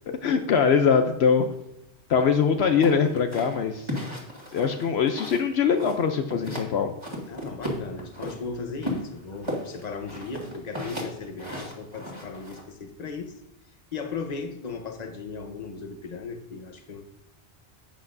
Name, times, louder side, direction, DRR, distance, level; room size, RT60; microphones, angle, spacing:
voice 1, 0.2-1.4 2.1-3.9 4.5-6.9, left 6 dB, 70° left, 6 dB, 0.9 m, -22 dB
sound 1, 2.8-5.5 5.8-6.7 7.0-8.4 8.8-12.6, equal, 25° right, 2.0 m, -34 dB
voice 2, 7.3-13.3 13.9-17.0, left 4 dB, 40° left, 6 dB, 1.0 m, -36 dB
11.5 x 8.2 x 2.6 m, 0.88 s
omnidirectional pair, 1.2 m